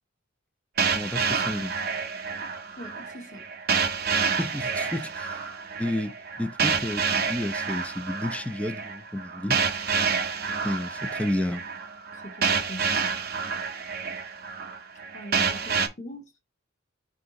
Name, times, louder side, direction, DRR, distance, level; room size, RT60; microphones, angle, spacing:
sound 1, 0.8-15.9, right 5 dB, 50° right, 0.6 m, -28 dB
voice 1, 0.9-1.7 4.4-5.4 5.8-9.6 10.6-11.6, left 1 dB, 5° left, 0.3 m, -31 dB
voice 2, 2.8-3.4 12.2-13.0 15.1-16.4, equal, 35° left, 0.8 m, -41 dB
4.7 x 2.6 x 3.7 m
head